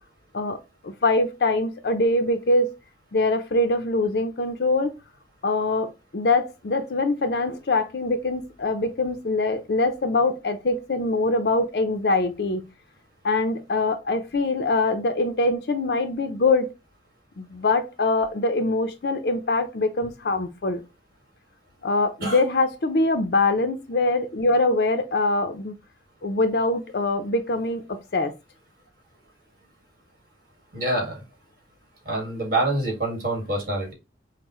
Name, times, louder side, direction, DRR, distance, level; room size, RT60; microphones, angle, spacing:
voice 1, 0.8-2.7 3.1-4.9 5.4-12.7 13.2-16.7 17.4-20.8 21.8-25.7 26.2-28.3, left 2 dB, 65° left, 0.5 m, -23 dB
voice 2, 30.7-31.2 32.1-33.9, right 2 dB, 50° right, 1.9 m, -26 dB
5.4 x 2.1 x 3.0 m
head